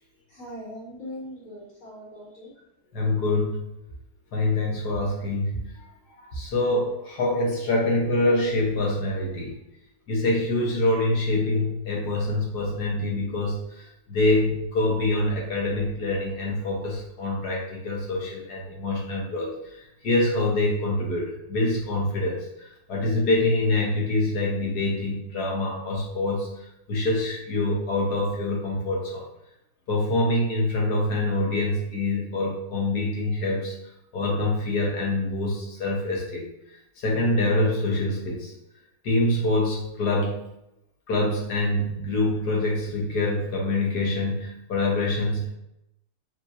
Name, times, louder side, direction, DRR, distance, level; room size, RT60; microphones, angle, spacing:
voice 1, 0.3-2.5, equal, 45° left, -7 dB, 1.7 m, -40 dB
voice 2, 2.9-3.6 4.3-5.6 6.3-9.6 10.1-13.8 14.1-19.8 20.0-26.5 26.9-29.3 29.9-33.7 34.1-36.5 37.0-38.5 39.0-40.4 41.1-45.5, left 2 dB, 60° left, -2 dB, 1.5 m, -25 dB
4.7 x 3.3 x 2.6 m, 0.84 s
omnidirectional pair, 2.0 m